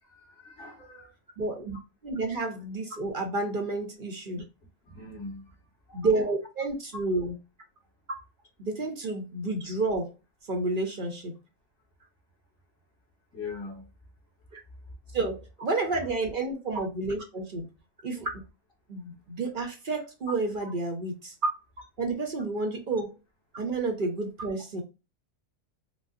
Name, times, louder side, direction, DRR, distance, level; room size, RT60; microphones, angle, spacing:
voice 1, 0.0-1.1 4.3-4.4 4.8-5.5 5.9-6.1 13.3-13.9 14.8-15.2 20.6-20.7, left 3 dB, 45° left, 1.8 m, -42 dB
voice 2, 1.4-1.8 2.0-4.4 5.9-7.4 8.6-10.1 10.5-11.4 14.5-14.6 15.1-17.7 18.0-18.4 18.9-21.4 22.0-23.1 23.5-24.8, right 3 dB, 45° right, 0.8 m, -30 dB
5.2 x 2.0 x 2.5 m
omnidirectional pair, 1.4 m